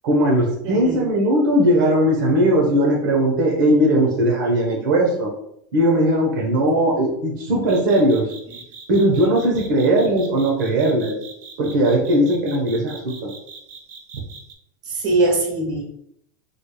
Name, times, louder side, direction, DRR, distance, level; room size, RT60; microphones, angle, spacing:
voice 1, 0.0-5.3 5.7-8.3 8.9-11.2 11.6-13.3, right 1 dB, 80° right, -1 dB, 1.0 m, -18 dB
voice 2, 0.6-1.0 14.9-15.8, right 2 dB, 40° right, 1 dB, 1.0 m, -21 dB
sound 1, 7.7-14.5, right 5 dB, 55° right, 0.7 m, -41 dB
4.1 x 3.3 x 2.2 m, 0.74 s
supercardioid pair, 140°, 10 cm